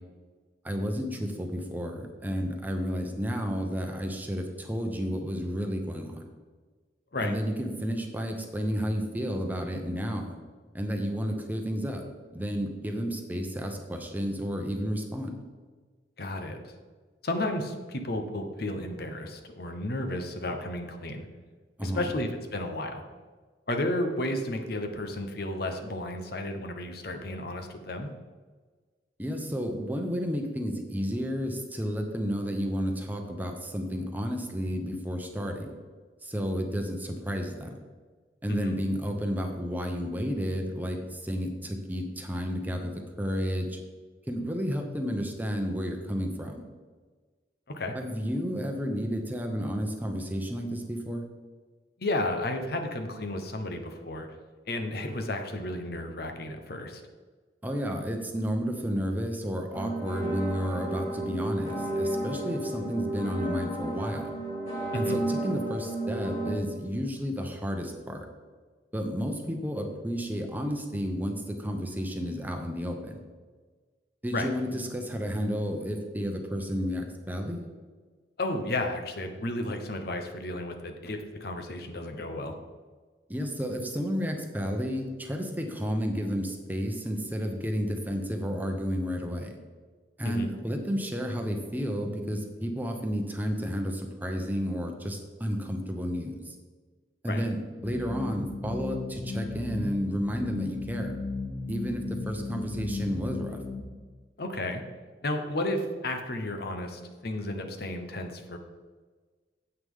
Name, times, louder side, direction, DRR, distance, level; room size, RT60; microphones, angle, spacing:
voice 1, 0.6-6.3 7.2-10.4 10.7-12.1 12.3-15.3 21.8-22.1 29.2-35.7 36.2-37.7 38.4-43.8 44.3-46.6 47.9-51.2 57.6-64.3 64.9-68.3 68.9-73.2 74.2-77.7 83.3-89.5 90.2-96.6 97.2-101.2 101.7-103.6, equal, 10° right, 3 dB, 0.9 m, -31 dB
voice 2, 16.2-16.6 17.2-21.3 21.8-23.0 23.7-28.1 38.5-38.8 47.7-48.0 52.0-54.3 54.7-57.0 64.9-65.2 74.3-74.5 78.4-82.6 90.2-90.5 97.3-97.4 104.4-104.8 105.2-108.6, left 1 dB, 60° left, 5 dB, 1.0 m, -32 dB
sound 1, 59.7-66.5, right 1 dB, 40° left, 3.2 m, -32 dB
sound 2, 97.8-103.8, left 3 dB, 90° left, 3.0 m, -35 dB
9.6 x 8.2 x 3.7 m, 1.4 s
head